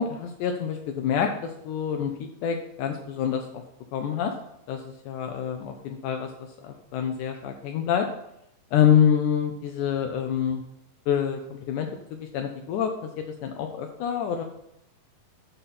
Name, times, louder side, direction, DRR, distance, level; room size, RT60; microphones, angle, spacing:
voice 1, 0.0-3.5 3.9-4.3 4.7-8.1 8.7-10.6 11.1-13.1 13.4-14.4, left 8 dB, 80° left, 4 dB, 2.1 m, -26 dB
11.5 x 6.8 x 4.3 m, 0.79 s
omnidirectional pair, 3.7 m